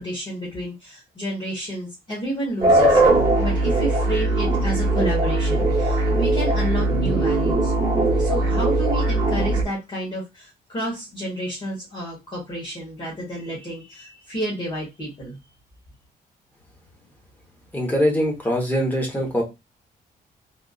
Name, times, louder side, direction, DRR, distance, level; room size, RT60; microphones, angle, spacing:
voice 1, 0.0-3.0 3.4-7.7 8.2-15.3, right 1 dB, 30° left, -5 dB, 1.4 m, -30 dB
sound 1, 2.6-9.6, right 2 dB, 20° right, 1.1 m, -20 dB
voice 2, 17.7-19.4, equal, 10° left, 0 dB, 1.1 m, -22 dB
3.5 x 2.5 x 2.4 m, 0.23 s
wide cardioid pair, 165°, 16 cm